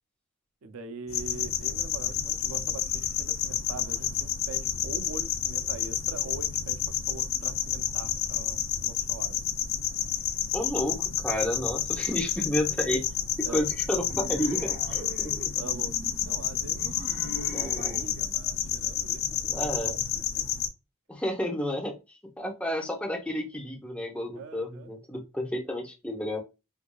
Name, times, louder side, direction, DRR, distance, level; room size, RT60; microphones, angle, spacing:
voice 1, 0.6-9.4 11.5-11.6 13.4-13.7 15.5-15.9 16.2-20.5 24.3-24.9, right 4 dB, 70° right, 0.5 m, -43 dB
sound 1, 1.1-20.7, left 9 dB, 65° left, 0.5 m, -30 dB
voice 2, 10.5-13.1 13.4-15.5 17.5-18.0 19.5-20.0 21.1-26.4, left 1 dB, 5° left, 0.8 m, -31 dB
sound 2, 14.1-18.1, right 1 dB, 35° right, 0.7 m, -42 dB
4.6 x 2.6 x 2.2 m
head